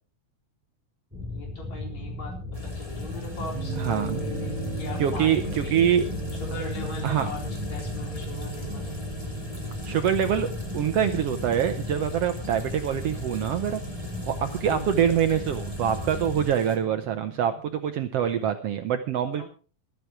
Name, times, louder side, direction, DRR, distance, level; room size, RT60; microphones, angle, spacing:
sound 1, 1.1-16.5, left 2 dB, 5° right, 3.4 m, -36 dB
voice 1, 1.2-2.3 2.6-5.8 6.4-9.0 14.6-15.1 19.4-19.5, left 1 dB, 60° left, 2 dB, 5.3 m, -39 dB
sound 2, 2.5-16.8, left 1 dB, 15° left, 2.0 m, -45 dB
sound 3, 3.6-18.1, right 3 dB, 50° right, 4.6 m, -38 dB
voice 2, 3.8-4.2 5.0-6.1 7.0-7.3 9.8-10.5 10.7-13.8 14.3-19.4, right 9 dB, 70° right, 8 dB, 1.5 m, -25 dB
13.5 x 12.5 x 4.7 m, 0.38 s
omnidirectional pair, 3.6 m